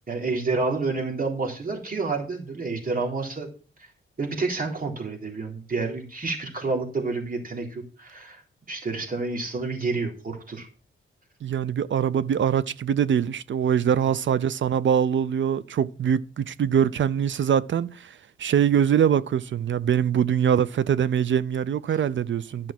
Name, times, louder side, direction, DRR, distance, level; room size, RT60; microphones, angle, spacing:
voice 1, 0.1-3.5 4.2-8.4 8.7-10.7 22.5-22.6, right 3 dB, 45° right, 3.7 m, -29 dB
voice 2, 11.4-22.7, right 8 dB, 65° right, 0.6 m, -23 dB
11.5 x 5.9 x 6.0 m
wide cardioid pair, 115°, 21 cm